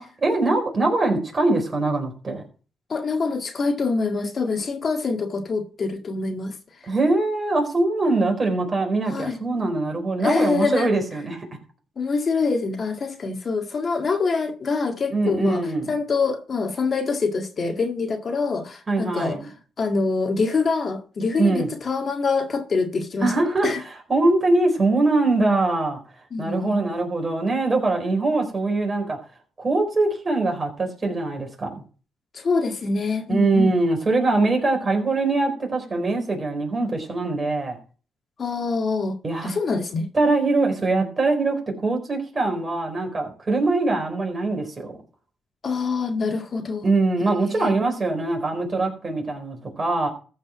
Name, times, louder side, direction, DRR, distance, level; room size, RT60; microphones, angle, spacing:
voice 1, 0.0-2.4 6.9-11.5 15.1-15.9 18.9-19.5 21.4-21.7 23.2-26.0 26.4-29.2 29.6-31.8 33.3-37.8 39.2-39.5 40.1-45.0 46.8-50.1, right 2 dB, 30° right, 4.6 m, -22 dB
voice 2, 2.9-6.5 6.8-6.9 9.1-9.4 10.2-10.9 12.0-19.5 19.8-23.3 23.6-23.8 26.3-26.8 32.3-33.7 38.4-39.2 39.4-40.1 45.6-46.9 47.5-47.7, left 4 dB, 45° left, 1.8 m, -25 dB
14.5 x 5.3 x 6.0 m
cardioid pair, 90°, 0 cm